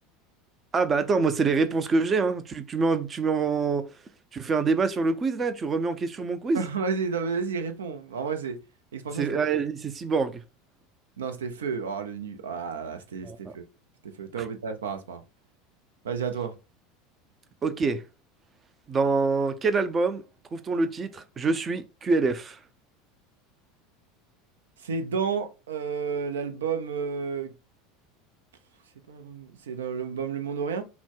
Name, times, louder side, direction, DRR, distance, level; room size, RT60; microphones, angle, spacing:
voice 1, 0.7-3.9 4.3-6.6 9.2-10.4 13.2-13.5 17.6-18.0 18.9-20.2 20.5-22.6, right 4 dB, 25° right, 0.6 m, -25 dB
voice 2, 6.5-8.6 8.9-9.3 11.2-13.6 14.0-15.2 16.0-16.5 24.8-27.5 29.1-30.8, right 5 dB, 70° right, 0.7 m, -31 dB
6.0 x 2.2 x 3.8 m
figure-of-eight pair, 75°, 0 cm